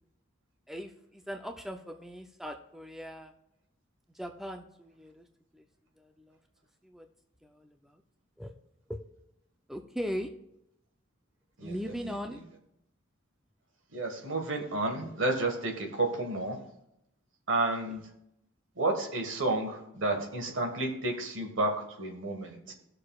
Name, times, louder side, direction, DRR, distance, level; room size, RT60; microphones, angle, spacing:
voice 1, 0.7-3.3 4.1-5.3 5.5-5.6 6.0-6.4 6.8-7.1 7.4-8.0 8.4-8.5 8.9-9.0 9.7-10.3 11.6-12.4, equal, ahead, 4 dB, 0.5 m, -39 dB
voice 2, 11.6-12.2 13.9-16.6 17.5-18.0 18.8-22.7, right 2 dB, 65° right, 3 dB, 1.5 m, -31 dB
18.5 x 6.6 x 2.4 m, 0.79 s
head